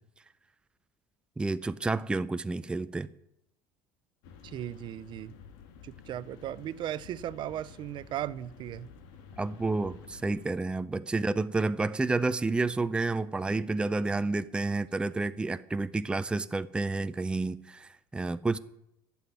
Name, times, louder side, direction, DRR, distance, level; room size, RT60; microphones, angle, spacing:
voice 1, 1.4-3.1 9.4-18.6, right 3 dB, 10° right, 0.5 m, -30 dB
sound 1, 4.2-10.5, left 6 dB, 85° left, 1.7 m, -51 dB
voice 2, 4.4-5.3 5.8-8.9, right 12 dB, 50° right, 0.6 m, -37 dB
12.5 x 7.1 x 9.6 m
supercardioid pair, 110°, 10 cm